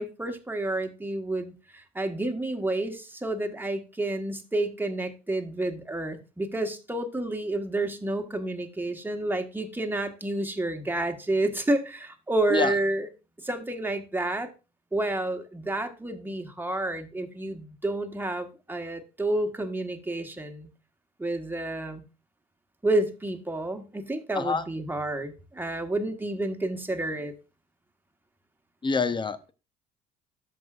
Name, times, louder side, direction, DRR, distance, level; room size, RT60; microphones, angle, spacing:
voice 1, 0.0-13.1 13.4-14.5 14.9-20.7 21.2-22.0 22.8-27.3, right 2 dB, 10° right, 1.5 m, -30 dB
voice 2, 28.8-29.5, left 4 dB, 25° left, 0.9 m, -26 dB
13.0 x 5.4 x 2.5 m
hypercardioid pair, 55°, 19 cm